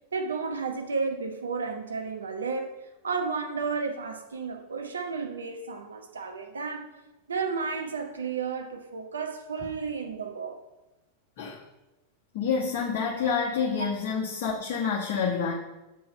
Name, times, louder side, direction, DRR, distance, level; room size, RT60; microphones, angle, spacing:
voice 1, 0.1-6.9 7.3-10.6 13.8-13.9, right 5 dB, 70° right, 0.9 m, -32 dB
voice 2, 12.3-15.5, left 6 dB, 45° left, 1.2 m, -28 dB
7.5 x 4.5 x 5.4 m
figure-of-eight pair, 90°, 0 cm